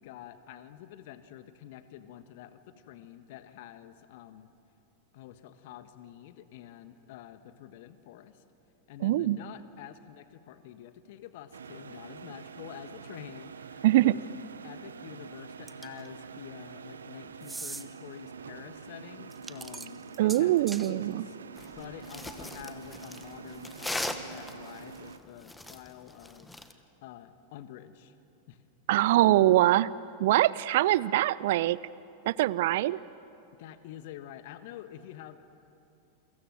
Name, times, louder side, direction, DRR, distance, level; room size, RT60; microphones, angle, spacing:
voice 1, 0.0-4.5 5.1-8.4 8.9-14.2 14.6-21.4 21.7-28.1 28.5-28.6 33.6-35.4, left 11 dB, 50° left, 11 dB, 1.5 m, -48 dB
voice 2, 9.0-9.4 13.8-14.1 20.2-21.2 28.9-29.9 30.2-31.8 32.3-33.0, right 15 dB, 55° right, 21 dB, 0.6 m, -23 dB
sound 1, 11.5-25.2, right 5 dB, 70° right, 0.9 m, -46 dB
sound 2, 15.7-16.1 17.4-17.8 19.3-20.9, right 3 dB, 10° right, 1.0 m, -41 dB
sound 3, 21.6-26.7, left 2 dB, 5° left, 1.5 m, -39 dB
29.0 x 24.0 x 7.7 m, 2.7 s
figure-of-eight pair, 90°, 0 cm